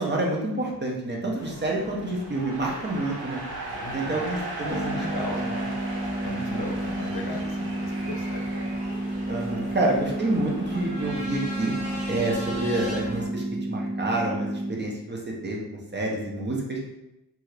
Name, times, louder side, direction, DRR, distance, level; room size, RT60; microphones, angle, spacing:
voice 1, 0.0-3.4 3.9-4.9 5.3-5.7 6.2-6.6 9.3-15.6 15.9-16.8, right 2 dB, 30° right, -1 dB, 0.5 m, -28 dB
sound 1, 1.4-13.3, equal, 20° left, 0.6 m, -41 dB
sound 2, 1.4-12.9, right 2 dB, 80° right, 0.8 m, -39 dB
voice 2, 3.7-4.2 4.6-5.4 6.0-8.5, left 3 dB, 70° left, 1 dB, 0.6 m, -37 dB
sound 3, 4.7-14.7, right 1 dB, 65° right, 1.1 m, -31 dB
2.7 x 2.3 x 3.2 m, 0.91 s
wide cardioid pair, 125°, 39 cm